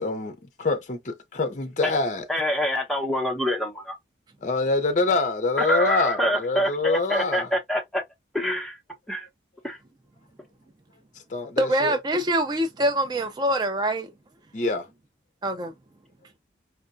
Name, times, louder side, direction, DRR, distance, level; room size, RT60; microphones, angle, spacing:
voice 1, 0.0-2.3 4.4-7.5 11.3-12.0 14.5-14.9, left 3 dB, 45° left, 0.6 m, -25 dB
voice 2, 2.3-4.0 5.6-8.0 8.3-8.8 9.1-9.3 9.6-9.8, equal, ahead, 0.8 m, -26 dB
voice 3, 11.6-14.1 15.4-15.7, right 1 dB, 25° right, 0.3 m, -24 dB
4.5 x 2.2 x 2.5 m
head